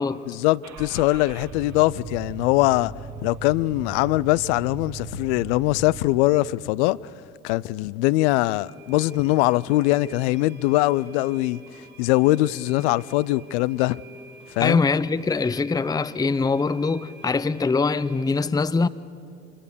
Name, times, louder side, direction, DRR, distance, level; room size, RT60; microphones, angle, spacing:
voice 1, 0.3-2.9 3.2-7.0 7.4-11.6 12.0-14.0 14.6-14.8, left 18 dB, 75° left, 0.5 m, -22 dB
Car / Engine starting, 0.6-6.1, right 4 dB, 50° right, 1.9 m, -39 dB
sound 1, 8.7-18.3, equal, 80° right, 3.3 m, -48 dB
voice 2, 14.6-18.9, left 4 dB, 10° left, 0.6 m, -23 dB
25.5 x 21.5 x 6.9 m
hypercardioid pair, 60°, 34 cm